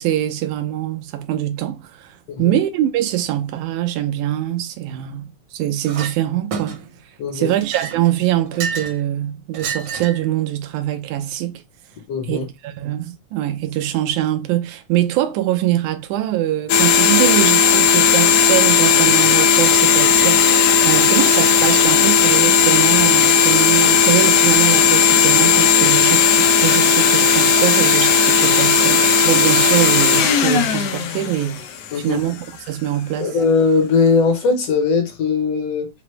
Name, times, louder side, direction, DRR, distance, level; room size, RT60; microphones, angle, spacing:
voice 1, 0.0-6.8 7.3-11.6 12.3-31.7 32.0-33.4, right 13 dB, 90° right, 2.1 m, -23 dB
Chink clink, 5.8-6.1 6.5-7.0 7.5-9.0 9.5-10.3, right 5 dB, 65° right, 1.5 m, -29 dB
voice 2, 7.2-7.5 12.1-12.5 31.9-32.2 33.2-35.9, left 4 dB, 65° left, 1.8 m, -19 dB
sound 1, 16.7-31.9, left 6 dB, 85° left, 1.4 m, -15 dB
5.8 x 2.0 x 3.1 m
omnidirectional pair, 3.4 m